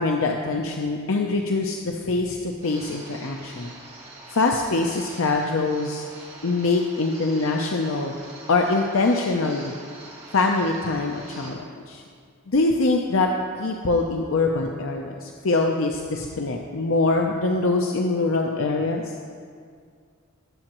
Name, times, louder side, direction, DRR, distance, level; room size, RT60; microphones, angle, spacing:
voice 1, 0.0-3.7 4.3-6.0 6.4-8.1 8.5-9.7 10.3-12.0 12.5-13.3 13.6-19.1, left 3 dB, 65° left, 2 dB, 0.6 m, -23 dB
sound 1, 2.6-11.5, right 2 dB, 30° right, 2.2 m, -44 dB
19.5 x 7.6 x 3.0 m, 2.1 s
head